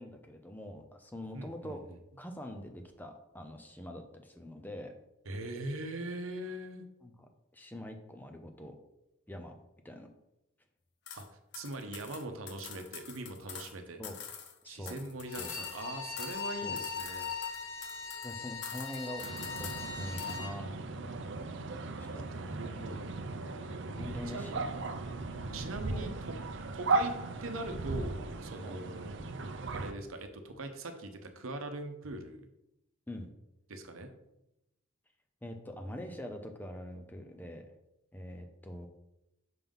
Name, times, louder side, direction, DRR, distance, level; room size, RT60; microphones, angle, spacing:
voice 1, 0.0-1.8 2.2-4.9 7.0-8.7 9.3-9.5 9.8-10.1 14.0-14.2 14.6-15.0 15.4-15.5 16.6-16.8 18.2-19.3 19.6-21.2 22.0-23.1 24.0-24.7 25.9-26.1 28.6-28.8 33.1-33.3 35.4-37.7 38.1-38.9, left 1 dB, 10° left, 5 dB, 0.5 m, -44 dB
voice 2, 1.3-1.8 5.3-6.8 11.2-11.3 11.5-14.0 14.7-17.3 22.2-23.0 24.3-24.5 25.5-26.3 26.7-27.1 27.4-29.1 29.7-32.4 33.7-34.1, right 2 dB, 85° right, 7 dB, 0.8 m, -41 dB
sound 1, 11.1-11.3 11.5-13.7 14.0-15.9 16.2-16.5 16.8-18.3 18.6-19.9 20.2-20.4, left 7 dB, 55° left, 0.8 m, -46 dB
Bowed string instrument, 15.2-20.5, left 5 dB, 75° left, 1.9 m, -40 dB
sound 2, 19.2-29.9, right 3 dB, 60° right, 0.5 m, -37 dB
5.8 x 3.7 x 5.4 m, 0.87 s
head